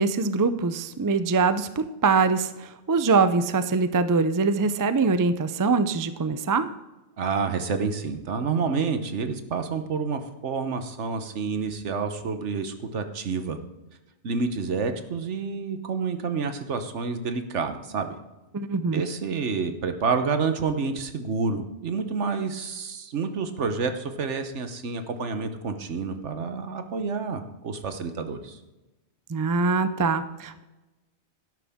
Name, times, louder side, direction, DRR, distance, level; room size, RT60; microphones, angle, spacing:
voice 1, 0.0-2.5 2.9-6.7 18.5-19.0 29.3-30.6, right 4 dB, 30° right, 12 dB, 0.3 m, -23 dB
voice 2, 7.2-13.6 14.2-18.2 18.9-28.6, right 5 dB, 80° right, 8 dB, 1.4 m, -29 dB
12.5 x 11.5 x 3.6 m, 1.1 s
omnidirectional pair, 1.2 m